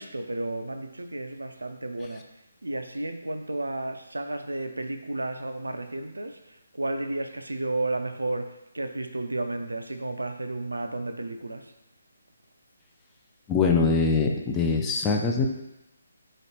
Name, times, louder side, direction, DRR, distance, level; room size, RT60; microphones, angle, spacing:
voice 1, 0.0-2.3 2.6-11.7, right 2 dB, 80° right, 7 dB, 0.3 m, -32 dB
voice 2, 13.5-15.5, left 4 dB, 15° left, 1 dB, 0.3 m, -23 dB
3.1 x 2.9 x 2.8 m, 0.93 s
figure-of-eight pair, 145°, 0 cm